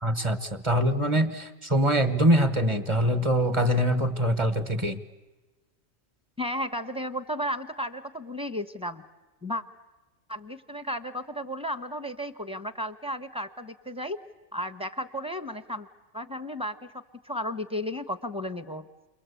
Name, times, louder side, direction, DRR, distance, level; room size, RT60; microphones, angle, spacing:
voice 1, 0.0-5.0, equal, 25° right, 11 dB, 1.4 m, -24 dB
voice 2, 6.4-9.0 9.4-9.6 10.3-14.2 14.5-15.9 16.1-16.8 17.2-18.9, equal, 5° right, 11 dB, 0.9 m, -33 dB
29.5 x 22.5 x 8.4 m, 1.1 s
omnidirectional pair, 1.3 m